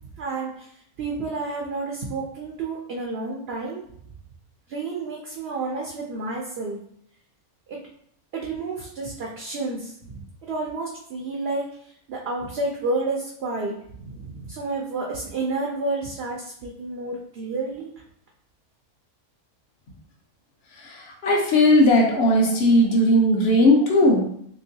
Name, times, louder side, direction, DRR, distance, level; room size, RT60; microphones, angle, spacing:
voice 1, 0.2-3.8 4.7-6.8 7.7-7.8 8.3-17.9, right 3 dB, 65° right, -1 dB, 0.6 m, -30 dB
voice 2, 20.7-24.3, left 1 dB, 55° left, 0 dB, 0.9 m, -18 dB
3.4 x 3.0 x 2.7 m, 0.67 s
omnidirectional pair, 1.5 m